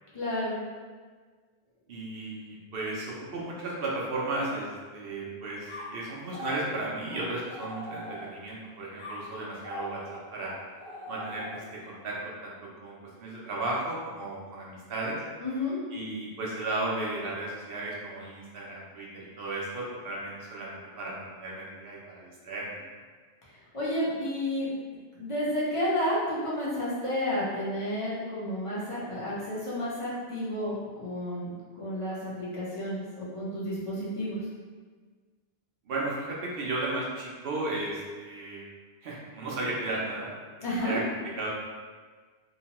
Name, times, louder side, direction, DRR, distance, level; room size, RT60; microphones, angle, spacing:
voice 1, 0.1-0.6 15.4-15.8 23.7-24.7 25.1-31.5 31.8-34.4 40.6-41.0, left 1 dB, 35° left, -8 dB, 0.8 m, -31 dB
voice 2, 1.9-10.5 11.1-12.2 12.4-15.2 15.9-22.8 35.9-38.6 39.0-40.3 40.8-41.0 41.4-41.5, right 2 dB, 65° right, -4 dB, 0.8 m, -35 dB
sound 1, 5.7-8.5 9.0-11.9, equal, 75° left, 0.9 m, -42 dB
2.9 x 2.2 x 2.8 m, 1.5 s
omnidirectional pair, 1.1 m